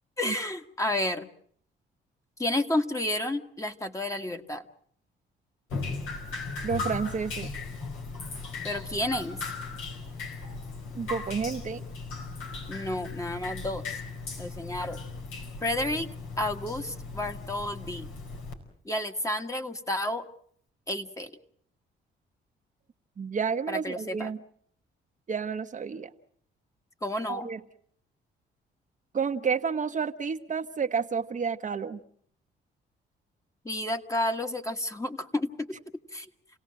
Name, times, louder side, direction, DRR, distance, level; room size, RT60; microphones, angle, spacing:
voice 1, 0.2-1.3 2.4-4.6 8.6-9.4 12.7-14.0 14.4-15.0 15.6-16.1 16.4-18.1 18.8-20.3 20.9-21.3 23.7-24.3 27.0-27.5 33.6-35.8 36.1-36.3, left 1 dB, 15° left, 6 dB, 1.7 m, -31 dB
Drip, 5.7-18.5, left 4 dB, 85° left, 4.6 m, -37 dB
voice 2, 6.6-7.5 10.9-11.9 23.2-24.4 25.3-26.1 27.3-27.6 29.1-32.0, right 6 dB, 40° right, 6 dB, 1.0 m, -30 dB
29.0 x 17.5 x 7.6 m, 0.65 s
cardioid pair, 90°, 20 cm